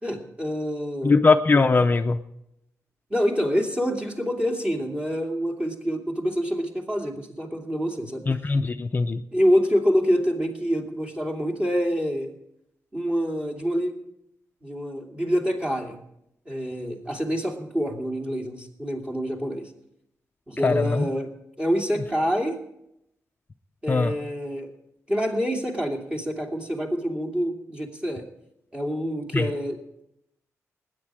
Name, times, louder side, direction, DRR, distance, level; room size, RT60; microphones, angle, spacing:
voice 1, 0.0-1.2 3.1-8.2 9.3-12.3 12.9-14.0 14.6-16.0 16.5-19.7 20.5-21.3 21.6-22.6 23.8-24.7 25.1-28.2 28.7-30.0, equal, 20° right, 1 dB, 2.6 m, -26 dB
voice 2, 1.0-2.2 8.3-9.2 20.6-21.1 23.9-24.2 29.3-29.5, left 3 dB, 35° left, 7 dB, 0.6 m, -20 dB
20.5 x 9.6 x 4.8 m, 0.79 s
wide cardioid pair, 120°, 6 cm